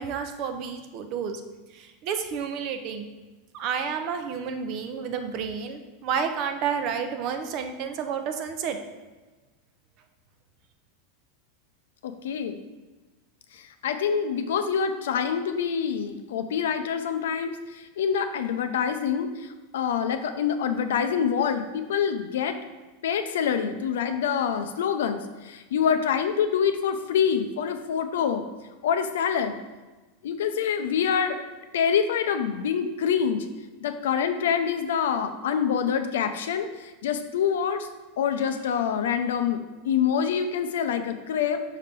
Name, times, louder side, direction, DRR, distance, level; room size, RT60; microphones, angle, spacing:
voice 1, 0.0-1.4 1.7-3.1 3.5-8.8, right 6 dB, 45° right, 7 dB, 0.6 m, -30 dB
voice 2, 12.0-12.6 13.5-22.6 23.0-28.5 28.8-29.6 30.2-31.4 31.7-33.4 33.8-37.9 38.2-39.6 39.8-41.6, left 7 dB, 85° left, 8 dB, 0.5 m, -26 dB
5.6 x 3.2 x 5.2 m, 1.2 s
supercardioid pair, 135°, 0 cm